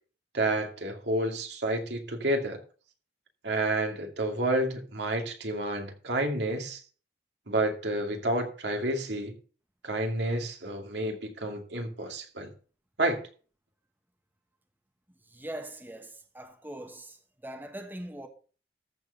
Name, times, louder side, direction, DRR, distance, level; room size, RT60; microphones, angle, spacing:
voice 1, 0.3-2.6 3.4-6.8 7.5-9.3 9.8-12.5 13.0-13.2, right 1 dB, 80° right, 2.4 m, -30 dB
voice 2, 15.3-17.2 17.4-18.3, right 1 dB, 10° right, 1.1 m, -41 dB
14.0 x 4.7 x 6.6 m
head